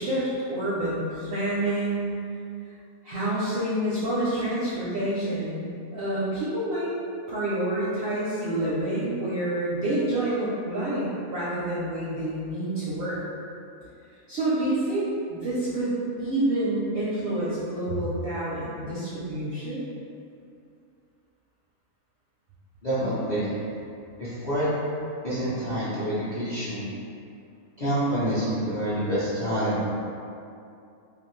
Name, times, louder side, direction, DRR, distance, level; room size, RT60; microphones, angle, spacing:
voice 1, 0.0-2.1 3.0-5.6 5.9-6.9 7.3-13.2 14.3-19.8, right 1 dB, 65° right, -10 dB, 0.6 m, -28 dB
voice 2, 22.8-23.5 24.2-24.7 25.2-26.9 27.8-29.9, right 1 dB, 50° left, -12 dB, 0.5 m, -27 dB
2.5 x 2.4 x 3.0 m, 2.5 s
omnidirectional pair, 1.5 m